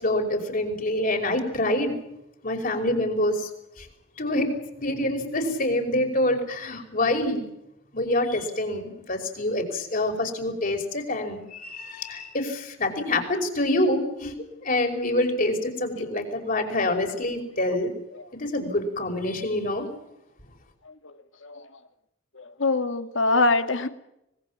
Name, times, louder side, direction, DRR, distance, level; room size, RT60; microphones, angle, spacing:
voice 1, 0.0-2.0 2.4-3.5 3.8-3.9 4.2-4.5 4.8-7.4 7.9-14.3 14.6-17.9 18.3-19.9, left 1 dB, 45° left, 4 dB, 5.4 m, -26 dB
voice 2, 20.9-21.2 21.4-21.7 22.4-23.9, left 3 dB, 80° left, 9 dB, 2.0 m, -24 dB
25.0 x 21.0 x 7.4 m, 0.84 s
head